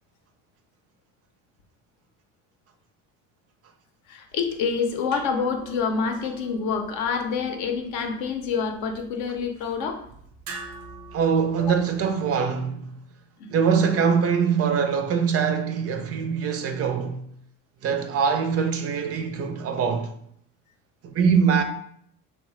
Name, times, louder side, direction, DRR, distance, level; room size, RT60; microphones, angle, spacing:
voice 1, 4.1-10.0 11.6-11.7 13.4-13.5, left 5 dB, 75° left, 0.6 m, -27 dB
sound 1, 4.3-12.3, right 3 dB, 85° right, 0.7 m, -45 dB
voice 2, 11.1-12.9 13.5-17.2 17.8-20.1 21.0-21.6, right 6 dB, 40° right, 0.4 m, -23 dB
2.8 x 2.1 x 3.0 m
supercardioid pair, 75°, 37 cm